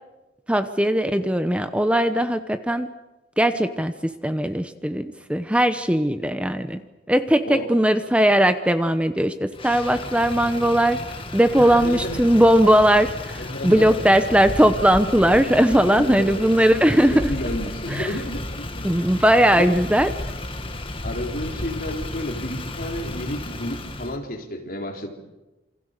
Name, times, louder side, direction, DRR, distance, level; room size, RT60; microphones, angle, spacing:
voice 1, 0.5-2.9 3.4-6.8 7.1-11.0 11.3-17.3 17.9-18.2 18.8-20.1, equal, 5° right, 9 dB, 0.9 m, -19 dB
Motor vehicle (road), 9.5-24.2, left 1 dB, 30° left, 2.1 m, -33 dB
voice 2, 11.6-12.2 13.4-14.1 15.9-16.4 17.1-19.0 19.5-19.8 21.0-25.1, left 1 dB, 55° left, 2 dB, 4.0 m, -31 dB
28.5 x 26.0 x 6.8 m, 1.1 s
head